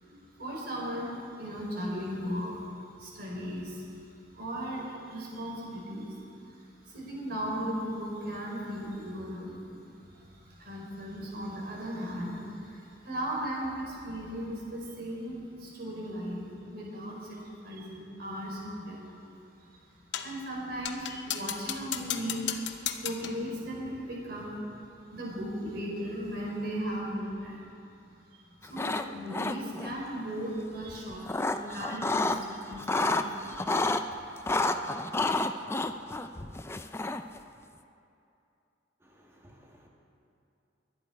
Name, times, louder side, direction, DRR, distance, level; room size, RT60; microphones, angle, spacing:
voice 1, 0.0-4.0 4.3-9.8 10.1-19.3 19.6-27.7 28.2-34.3 34.6-35.0, equal, 60° right, -3 dB, 4.3 m, -37 dB
sound 1, 20.1-20.4 20.8-23.4, left 9 dB, 75° left, 0.8 m, -35 dB
sound 2, 28.6-29.1 29.3-29.9 30.9-32.4 32.7-34.0 34.5-37.4, left 2 dB, 15° left, 0.4 m, -29 dB
voice 2, 39.0-39.9, equal, 15° right, -2 dB, 1.9 m, -58 dB
22.5 x 10.5 x 4.5 m, 2.6 s
head